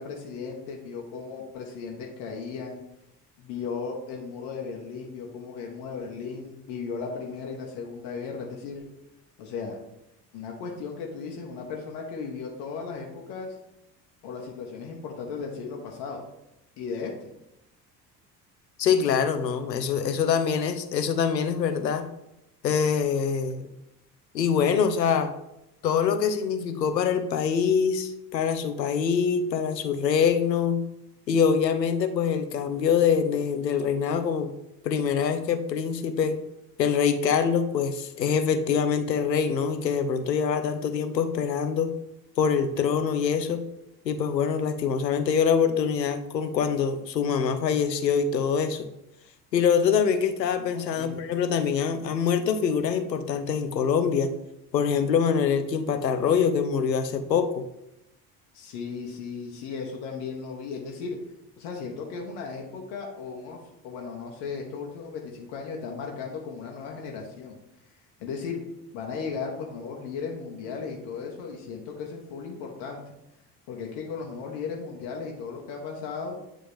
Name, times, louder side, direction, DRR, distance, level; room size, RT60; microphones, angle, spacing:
voice 1, 0.0-2.8 3.4-8.8 9.4-9.8 10.3-13.6 14.2-16.2 16.8-17.3 50.6-51.2 58.5-61.2 61.6-67.6 68.2-68.6 68.9-73.0 73.7-76.4, left 5 dB, 55° left, 1 dB, 1.1 m, -36 dB
voice 2, 18.8-22.0 22.6-23.7 24.3-25.3 25.8-30.8 31.3-34.5 34.8-36.4 36.8-41.9 42.4-43.6 44.0-48.9 49.5-54.3 54.7-57.6, left 7 dB, 80° left, 9 dB, 0.6 m, -24 dB
8.9 x 3.7 x 3.5 m, 0.86 s
figure-of-eight pair, 55°, 49 cm